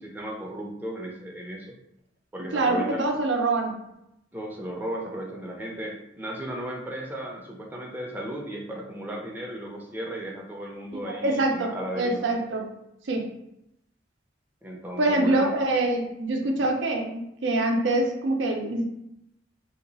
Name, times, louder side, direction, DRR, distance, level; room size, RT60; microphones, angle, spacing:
voice 1, 0.0-1.7 2.3-3.1 4.3-12.3 14.6-15.5 16.4-16.6, right 1 dB, 10° right, -1 dB, 0.5 m, -35 dB
voice 2, 2.5-3.8 10.9-12.6 13.1-13.3 15.0-18.8, right 2 dB, 85° right, 2 dB, 0.6 m, -25 dB
2.8 x 2.3 x 4.0 m, 0.81 s
head